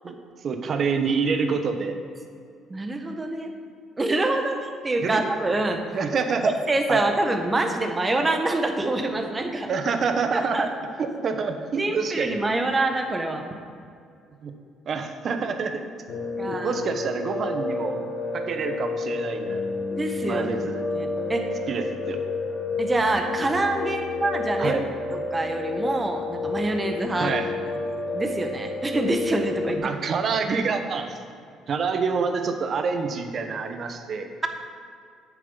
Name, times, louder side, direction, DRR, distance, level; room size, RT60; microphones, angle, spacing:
voice 1, 0.4-1.9 5.0-5.2 5.9-6.5 6.9-7.0 9.7-10.7 11.0-12.4 14.4-14.5 14.9-15.9 16.4-17.9 18.3-19.6 20.3-20.8 21.7-22.2 24.6-24.8 27.2-27.5 29.8-31.2 31.7-34.3, right 5 dB, 55° right, 6 dB, 1.0 m, -27 dB
voice 2, 2.7-3.5 4.0-5.8 6.7-9.7 10.3-10.6 11.8-13.4 16.4-16.7 20.0-20.5 20.9-21.5 22.8-24.8 25.1-27.3 28.1-29.9, right 2 dB, 25° right, 5 dB, 1.3 m, -26 dB
Piano, 16.1-29.8, left 3 dB, 60° left, 2.4 m, -30 dB
8.4 x 6.9 x 5.6 m, 2.4 s
supercardioid pair, 75°, 0 cm